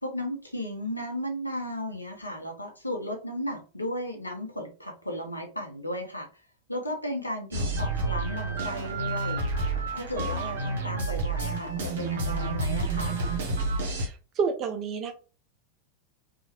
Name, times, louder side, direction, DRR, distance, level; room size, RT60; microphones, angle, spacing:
voice 1, 0.0-6.3 6.7-9.4 9.9-13.2, equal, 85° left, 2 dB, 0.8 m, -35 dB
sound 1, 7.5-14.1, right 3 dB, 55° right, 0.9 m, -29 dB
voice 2, 14.0-15.1, right 5 dB, 30° right, 5 dB, 0.4 m, -30 dB
2.9 x 2.4 x 2.8 m, 0.34 s
figure-of-eight pair, 90°, 0 cm